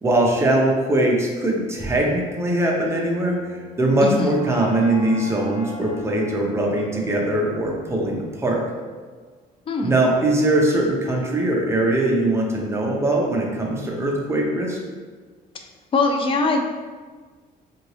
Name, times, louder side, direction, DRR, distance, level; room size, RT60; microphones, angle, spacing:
voice 1, 0.0-8.6 9.8-14.8, right 1 dB, 15° right, -1 dB, 0.6 m, -21 dB
sound 1, 2.8-8.9, left 1 dB, 60° left, 0.9 m, -40 dB
voice 2, 4.0-4.4 9.7-9.9 15.5-15.6 15.9-16.6, left 3 dB, 30° left, 4 dB, 0.4 m, -21 dB
2.8 x 2.7 x 3.1 m, 1.4 s
cardioid pair, 110°, 17 cm